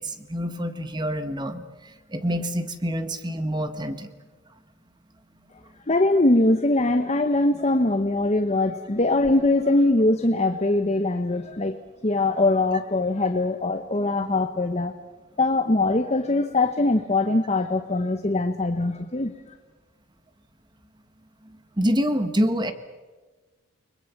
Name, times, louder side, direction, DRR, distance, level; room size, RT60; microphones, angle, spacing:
voice 1, 0.0-4.1 21.8-22.7, equal, 20° right, 10 dB, 1.4 m, -26 dB
voice 2, 5.9-11.8 12.0-15.0 15.4-19.3, left 2 dB, 30° left, 8 dB, 0.9 m, -22 dB
29.5 x 21.0 x 7.2 m, 1.3 s
head